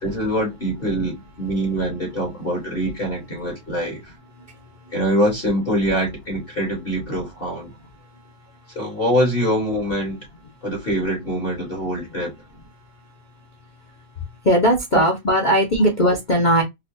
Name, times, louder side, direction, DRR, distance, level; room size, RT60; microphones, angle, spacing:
voice 1, 0.0-4.1 4.9-7.7 8.7-10.2 10.6-12.3, equal, 30° left, 1.4 m, -24 dB
voice 2, 14.4-16.6, equal, 75° left, 0.4 m, -18 dB
4.7 x 2.3 x 2.6 m
omnidirectional pair, 2.1 m